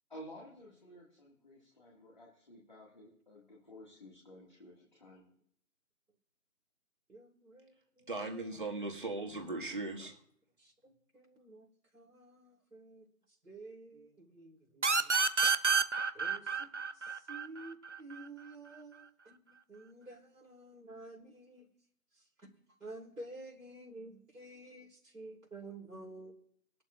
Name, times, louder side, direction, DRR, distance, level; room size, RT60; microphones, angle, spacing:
voice 1, 0.1-5.3, equal, 30° left, -2 dB, 2.0 m, -53 dB
voice 2, 7.1-8.5 10.6-15.1 16.1-16.7 16.9-21.7 22.1-22.5 22.8-26.3, right 2 dB, 80° right, -5 dB, 3.3 m, -51 dB
voice 3, 8.1-10.2, right 2 dB, 35° right, 1 dB, 1.8 m, -38 dB
sound 1, 14.8-18.2, right 4 dB, 50° right, 0.7 m, -29 dB
21.0 x 11.5 x 2.5 m, 0.66 s
figure-of-eight pair, 165°, 47 cm